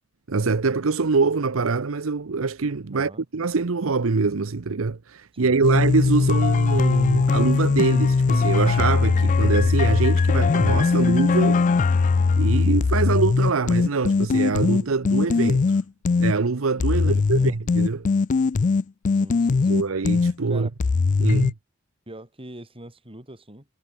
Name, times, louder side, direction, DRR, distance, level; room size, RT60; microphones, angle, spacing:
voice 1, 0.3-11.9 12.4-15.6 16.2-18.1 19.7-20.7 21.2-21.5, right 4 dB, 80° right, 0.8 m, -24 dB
voice 2, 2.9-3.2 5.3-5.9 17.1-17.6 19.1-19.8 20.5-20.7 22.1-23.7, right 1 dB, 25° right, 6.3 m, -42 dB
sound 1, 5.6-16.3 16.8-20.3 20.8-21.5, left 4 dB, 40° left, 0.4 m, -20 dB
head